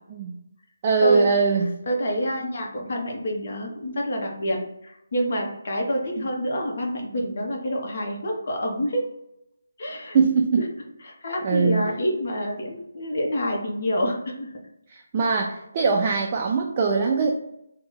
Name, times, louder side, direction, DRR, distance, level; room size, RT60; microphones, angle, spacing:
voice 1, 0.8-1.7 10.1-10.7 11.4-11.8 14.9-17.3, right 4 dB, 30° right, 0 dB, 0.3 m, -21 dB
voice 2, 1.9-9.0 9.8-10.2 10.6-10.7 11.0-14.5, equal, 50° left, 0 dB, 0.8 m, -27 dB
3.0 x 2.1 x 3.7 m, 0.80 s
figure-of-eight pair, 160°, 0 cm